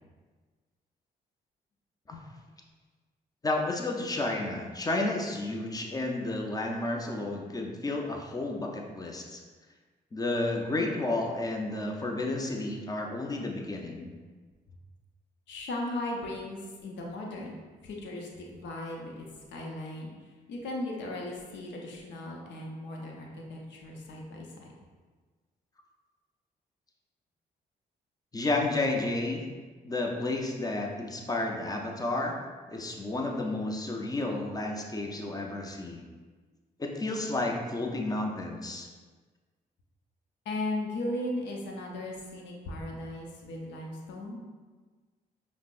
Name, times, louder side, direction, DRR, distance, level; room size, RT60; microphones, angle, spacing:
voice 1, 3.4-9.4 10.1-14.1 28.3-29.4 29.8-32.4 32.7-36.0 36.8-38.9, left 2 dB, 20° left, 1 dB, 0.6 m, -31 dB
voice 2, 15.5-17.6 17.8-19.3 19.5-20.1 20.5-24.7 40.4-44.4, left 1 dB, 75° left, -1 dB, 0.6 m, -37 dB
5.0 x 2.1 x 2.5 m, 1.4 s
supercardioid pair, 55°, 19 cm